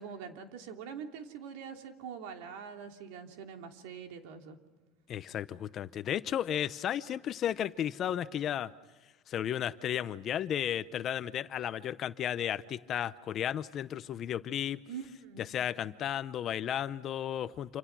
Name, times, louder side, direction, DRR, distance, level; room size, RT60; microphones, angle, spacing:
voice 1, 0.0-4.6 14.9-15.4, right 7 dB, 70° right, 4 dB, 3.1 m, -44 dB
voice 2, 5.1-8.7 9.3-14.8 15.4-17.8, left 10 dB, 30° left, 14 dB, 0.7 m, -34 dB
28.0 x 27.5 x 6.1 m, 1.2 s
cardioid pair, 165°, 0 cm